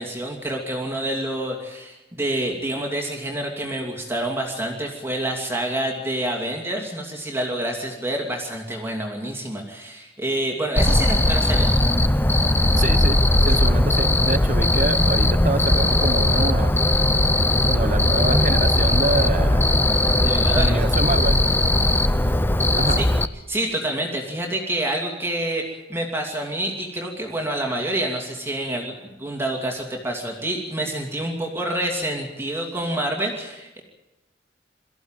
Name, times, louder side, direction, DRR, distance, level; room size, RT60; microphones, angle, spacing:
voice 1, 0.0-11.7 20.2-20.8 23.0-23.1 23.5-33.8, right 1 dB, 15° right, 1 dB, 2.7 m, -27 dB
Cricket, 10.8-23.3, left 1 dB, 10° left, 0.6 m, -19 dB
voice 2, 12.8-16.8 17.7-19.7 20.6-21.4 22.8-23.0, right 2 dB, 45° right, 13 dB, 1.0 m, -26 dB
23.5 x 14.5 x 9.1 m, 1.0 s
head